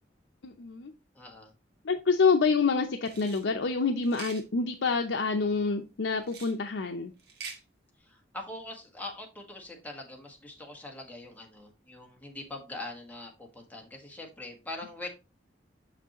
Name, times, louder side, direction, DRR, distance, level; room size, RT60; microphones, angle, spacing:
voice 1, 0.4-0.9 1.8-7.1, left 4 dB, 80° left, 4 dB, 0.6 m, -27 dB
voice 2, 1.1-1.5 8.0-15.1, left 2 dB, 10° left, 1 dB, 1.4 m, -43 dB
sound 1, 3.0-3.4 4.0-4.4 6.2-6.6 7.2-7.6, right 5 dB, 60° right, 1.4 m, -44 dB
6.2 x 5.9 x 2.9 m, 0.28 s
head